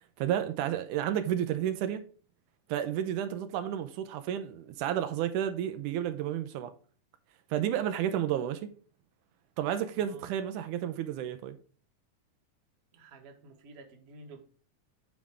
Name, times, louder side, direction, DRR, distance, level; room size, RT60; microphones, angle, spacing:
voice 1, 0.2-2.0 2.7-6.7 7.5-8.7 9.6-11.6, right 10 dB, 80° right, 2.1 m, -31 dB
voice 2, 12.9-14.4, right 2 dB, 40° right, 1.3 m, -51 dB
9.4 x 5.0 x 3.5 m
omnidirectional pair, 3.7 m